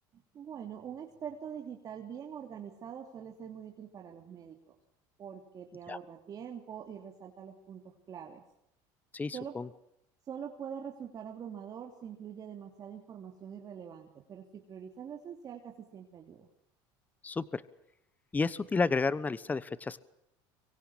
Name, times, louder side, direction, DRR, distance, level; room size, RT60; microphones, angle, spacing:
voice 1, 0.1-4.7 5.2-8.4 9.3-9.6 10.3-16.5, right 8 dB, 40° right, 2 dB, 3.1 m, -44 dB
voice 2, 9.1-9.7 17.2-17.6 18.3-20.0, left 4 dB, 15° left, 17 dB, 1.0 m, -31 dB
25.0 x 23.5 x 7.2 m, 0.82 s
supercardioid pair, 120°, 10 cm